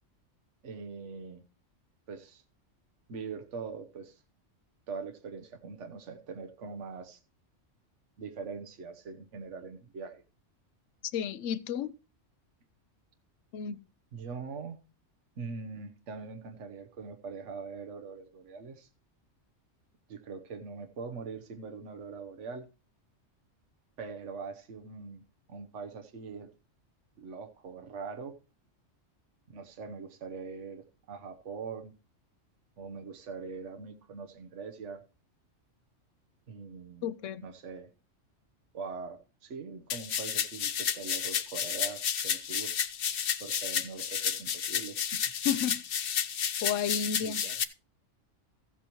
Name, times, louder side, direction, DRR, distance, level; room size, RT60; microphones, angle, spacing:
voice 1, 0.6-1.4 2.1-2.4 3.1-4.2 4.9-7.2 8.2-10.2 14.1-14.8 15.4-18.9 20.1-22.7 24.0-25.2 25.5-26.5 27.2-28.4 29.5-31.9 32.8-35.0 36.5-37.1 37.4-37.9 38.7-42.7 43.4-45.0 47.2-47.6, right 5 dB, 75° right, 1.3 m, -42 dB
voice 2, 11.1-11.9 13.5-13.8 37.0-37.4 45.4-45.8 46.6-47.4, left 8 dB, 80° left, 1.0 m, -32 dB
sound 1, 39.9-47.6, left 8 dB, 55° left, 0.8 m, -31 dB
15.0 x 7.9 x 3.0 m
omnidirectional pair, 1.3 m